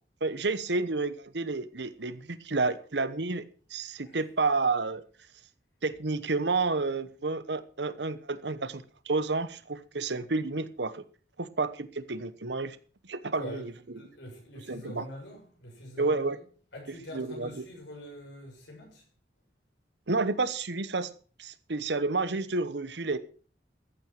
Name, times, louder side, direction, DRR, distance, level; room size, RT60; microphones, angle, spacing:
voice 1, 0.2-3.4 3.7-5.0 5.8-11.0 11.4-12.8 13.1-13.7 14.7-15.0 16.0-16.4 17.1-17.6 20.1-21.1 21.4-23.2, right 3 dB, 75° right, 1.1 m, -30 dB
voice 2, 13.3-16.4 16.7-19.1, left 1 dB, 85° left, 7.5 m, -45 dB
14.0 x 9.0 x 6.0 m
head